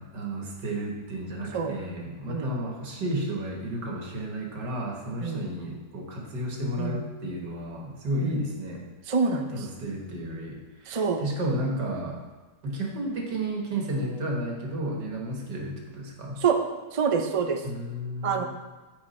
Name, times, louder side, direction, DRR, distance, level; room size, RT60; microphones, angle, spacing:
voice 1, 0.0-8.8 9.5-12.2 12.6-16.4 17.6-18.5, right 1 dB, 90° right, -1 dB, 2.3 m, -32 dB
voice 2, 9.1-9.6 10.9-11.2 16.4-16.6 16.9-17.6 18.2-18.4, right 5 dB, 50° right, 5 dB, 0.3 m, -26 dB
14.5 x 4.9 x 4.3 m, 1.2 s
omnidirectional pair, 1.8 m